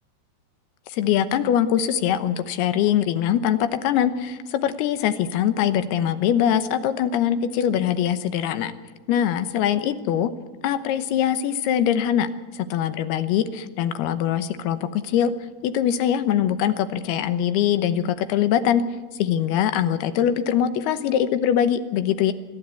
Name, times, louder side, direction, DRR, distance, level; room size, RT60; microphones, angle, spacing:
voice 1, 0.9-8.7 9.1-10.3 10.6-12.3 12.5-15.3 15.6-18.8 19.2-22.3, left 9 dB, 80° left, 11 dB, 2.9 m, -22 dB
26.5 x 12.0 x 8.3 m, 1.3 s
omnidirectional pair, 4.7 m